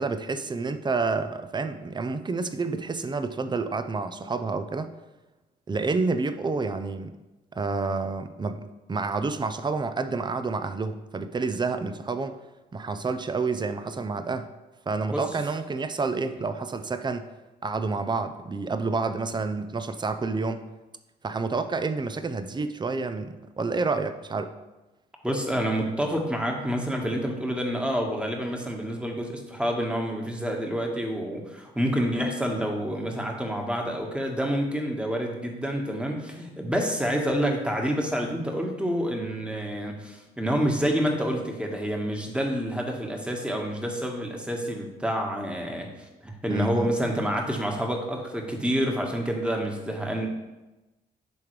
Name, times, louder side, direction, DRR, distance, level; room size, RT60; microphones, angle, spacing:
voice 1, 0.0-4.9 5.7-7.1 7.5-8.6 8.9-12.4 12.7-14.5 14.9-17.3 17.6-20.6 21.2-24.5 46.5-46.9, right 4 dB, 25° right, 10 dB, 0.6 m, -29 dB
voice 2, 25.2-45.9 46.2-50.3, equal, 5° right, 1 dB, 1.4 m, -28 dB
10.5 x 3.6 x 3.2 m, 1.1 s
supercardioid pair, 60°, 19 cm